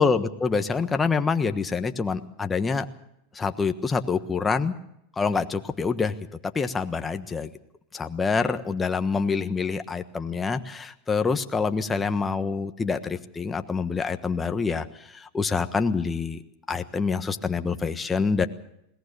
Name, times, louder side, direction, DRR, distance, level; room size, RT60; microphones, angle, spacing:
voice 1, 0.0-2.8 3.3-4.7 5.2-6.1 6.5-7.5 7.9-16.4 16.7-18.5, left 5 dB, 15° left, 7 dB, 1.3 m, -26 dB
21.0 x 18.0 x 6.9 m, 0.79 s
hypercardioid pair, 120°, 0 cm